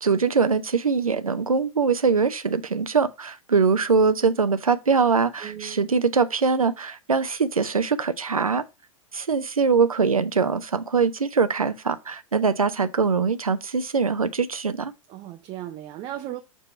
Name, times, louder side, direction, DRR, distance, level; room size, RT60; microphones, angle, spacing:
voice 1, 0.0-8.6 9.1-14.9, right 5 dB, 80° right, 0.6 m, -22 dB
voice 2, 5.4-5.8 15.1-16.4, right 12 dB, 25° right, 0.6 m, -36 dB
6.9 x 2.9 x 5.6 m
figure-of-eight pair, 100°, 18 cm